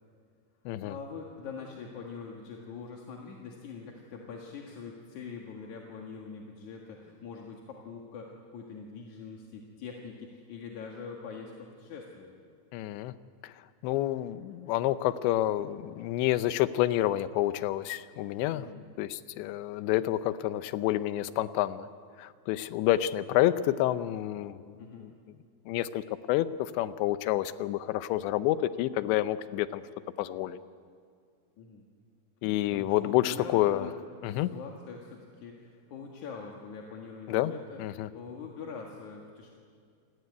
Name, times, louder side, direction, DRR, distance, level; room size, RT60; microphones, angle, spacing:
voice 1, 0.8-12.3 18.5-18.8 24.8-25.1 31.6-31.8 32.7-33.9 34.3-39.5, left 5 dB, 55° left, 0 dB, 2.6 m, -43 dB
voice 2, 12.7-13.1 13.4-13.5 13.8-18.7 19.0-21.9 22.2-25.1 25.7-29.8 30.2-30.6 32.4-33.9 34.2-34.5 37.3-37.5 37.8-38.1, left 14 dB, 90° left, 13 dB, 3.1 m, -29 dB
28.5 x 17.5 x 9.6 m, 2.2 s
omnidirectional pair, 5.0 m